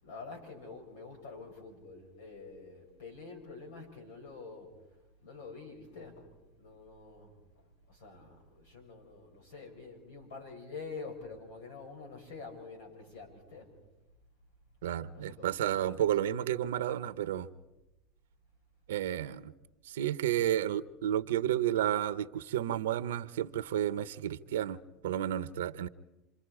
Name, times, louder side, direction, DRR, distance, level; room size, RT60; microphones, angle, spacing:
voice 1, 0.0-4.7 5.2-13.7 15.1-16.1, left 4 dB, 80° left, 7.1 m, -47 dB
voice 2, 14.8-17.5 18.9-19.5 19.8-25.9, right 11 dB, 85° right, 0.8 m, -31 dB
28.5 x 25.0 x 4.9 m
hypercardioid pair, 100°, 0 cm